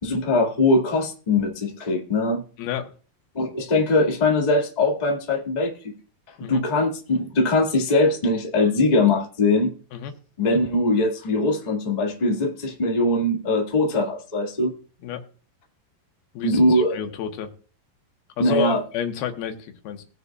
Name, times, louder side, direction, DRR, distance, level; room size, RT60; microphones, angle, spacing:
voice 1, 0.0-2.4 3.3-5.7 6.4-9.7 10.4-14.7 16.4-16.9 18.4-18.8, left 2 dB, 20° left, -1 dB, 1.0 m, -21 dB
voice 2, 2.6-2.9 6.4-6.6 9.9-10.1 15.0-15.2 16.3-17.5 18.4-20.0, left 9 dB, 85° left, 5 dB, 3.0 m, -30 dB
20.0 x 6.8 x 2.4 m, 0.39 s
omnidirectional pair, 4.4 m